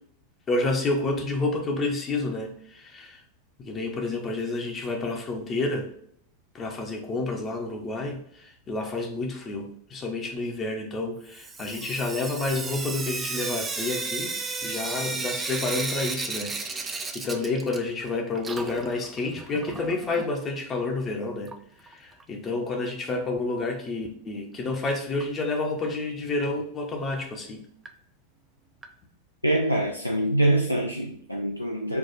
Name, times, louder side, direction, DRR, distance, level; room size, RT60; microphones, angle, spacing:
voice 1, 0.5-3.2 3.6-5.9 6.5-14.3 14.6-21.5 21.8-27.6, left 2 dB, 25° left, 0.7 m, -29 dB
Sink (filling or washing) / Drip, 11.3-18.1 18.3-20.3 21.5-21.6 21.9-22.0 22.2-22.3 25.2-25.3 25.8-25.9 26.4-26.5 27.1-27.2 27.9-28.0 28.8-28.9, right 3 dB, 15° right, 0.4 m, -34 dB
voice 2, 29.4-32.0, right 1 dB, 90° left, 0.4 m, -24 dB
4.4 x 2.3 x 4.0 m
figure-of-eight pair, 90°, 0 cm